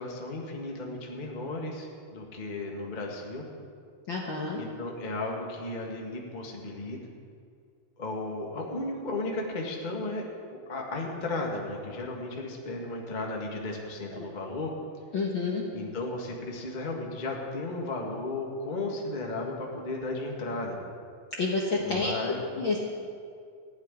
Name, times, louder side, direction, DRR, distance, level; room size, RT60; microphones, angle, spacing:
voice 1, 0.0-3.4 4.5-7.0 8.0-14.7 15.7-20.8 21.8-22.5, left 2 dB, 25° left, -1 dB, 1.0 m, -35 dB
voice 2, 4.1-4.6 14.1-14.3 15.1-15.6 21.3-22.1 22.6-22.9, left 3 dB, 55° left, -2 dB, 1.4 m, -29 dB
15.5 x 6.5 x 9.8 m, 2.2 s
omnidirectional pair, 3.8 m